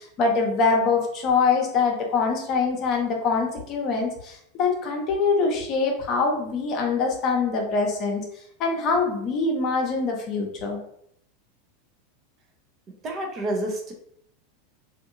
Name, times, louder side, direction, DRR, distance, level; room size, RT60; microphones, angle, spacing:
voice 1, 0.0-8.2 8.6-10.8, left 4 dB, 45° left, 1 dB, 0.7 m, -24 dB
voice 2, 13.0-13.9, right 1 dB, 35° right, 1 dB, 0.6 m, -28 dB
2.6 x 2.5 x 2.6 m, 0.69 s
hypercardioid pair, 90°, 0 cm